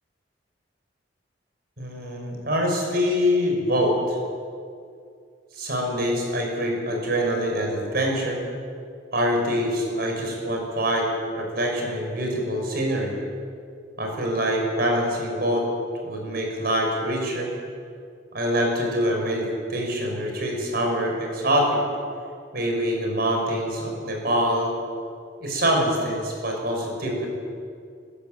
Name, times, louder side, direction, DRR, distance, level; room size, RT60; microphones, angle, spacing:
voice 1, 1.8-4.2 5.5-8.4 9.1-11.1 11.4-13.2 14.0-15.7 16.0-17.5 18.3-21.8 22.5-24.7 25.4-27.3, equal, 55° right, 1 dB, 5.8 m, -25 dB
22.0 x 13.0 x 9.4 m, 2.3 s
head